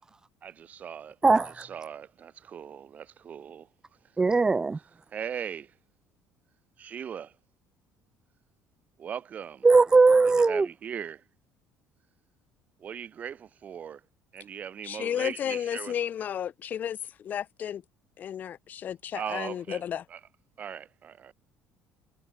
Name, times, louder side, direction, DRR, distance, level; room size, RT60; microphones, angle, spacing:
voice 1, 0.4-1.2 1.6-3.7 5.1-5.7 6.8-7.3 9.0-9.7 10.5-11.2 12.8-14.0 14.3-15.9 19.1-19.8 20.1-20.2 20.6-21.3, right 8 dB, 30° right, 1.1 m, -39 dB
voice 2, 1.2-1.6 4.2-4.8 9.6-10.7, right 3 dB, 15° right, 0.5 m, -20 dB
voice 3, 14.8-17.8 18.2-20.0, left 9 dB, 35° left, 1.2 m, -33 dB
cardioid pair, 170°, 5 cm